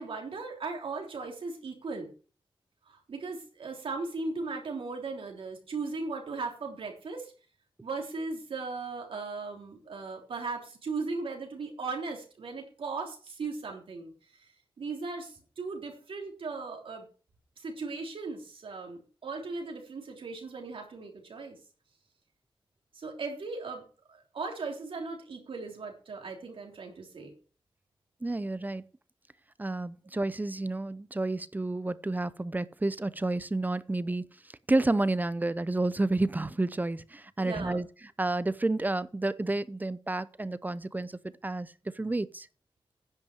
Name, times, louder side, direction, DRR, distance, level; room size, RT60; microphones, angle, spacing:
voice 1, 0.0-2.1 2.9-7.3 7.8-14.1 14.4-14.5 14.8-17.1 17.6-21.6 22.9-23.8 24.1-27.3 28.6-28.7 37.4-37.8, right 4 dB, 80° right, 3.4 m, -37 dB
voice 2, 28.2-28.8 29.6-34.2 34.7-37.9 38.2-41.1 41.4-42.5, right 2 dB, 20° right, 0.6 m, -30 dB
10.5 x 5.8 x 7.4 m
cardioid pair, 70°, 9 cm